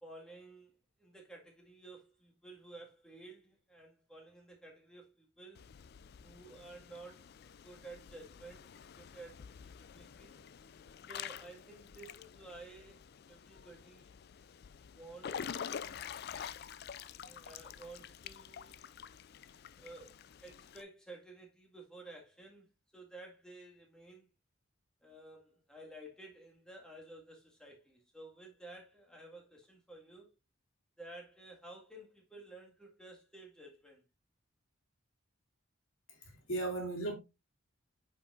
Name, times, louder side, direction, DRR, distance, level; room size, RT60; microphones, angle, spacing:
voice 1, 0.0-0.7 1.0-5.7 6.2-7.3 7.6-8.7 9.0-10.4 11.1-14.1 15.0-16.4 17.2-18.9 19.8-20.1 20.4-24.3 25.0-30.3 31.0-34.0, right 2 dB, 5° left, 1.8 m, -53 dB
Water / Splash splatter / Drip, 5.5-20.8, left 8 dB, 50° left, 0.3 m, -48 dB
voice 2, 36.1-37.1, right 2 dB, 80° left, 3.0 m, -37 dB
8.6 x 5.5 x 2.5 m
head